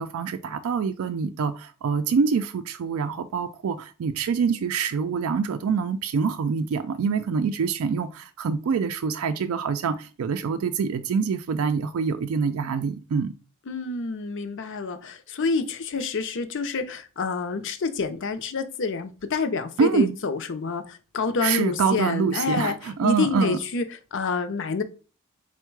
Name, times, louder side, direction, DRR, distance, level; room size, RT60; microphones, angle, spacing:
voice 1, 0.0-13.3 19.8-20.2 21.4-23.6, right 5 dB, 65° right, 0.3 m, -25 dB
voice 2, 13.7-22.7 23.0-23.8 24.1-24.8, left 4 dB, 55° left, 0.6 m, -28 dB
4.4 x 2.2 x 4.5 m
head